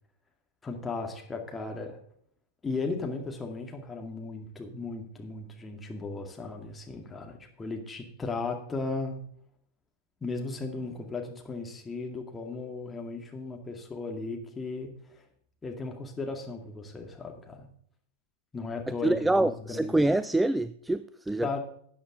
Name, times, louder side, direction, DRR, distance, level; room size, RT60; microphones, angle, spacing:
voice 1, 0.6-2.0 2.6-9.2 10.2-15.2 15.6-17.7 18.5-19.9 21.4-21.6, left 3 dB, 15° left, 2.2 m, -36 dB
voice 2, 19.0-21.6, right 2 dB, 5° right, 0.3 m, -26 dB
13.0 x 8.7 x 3.8 m
figure-of-eight pair, 90°, 0 cm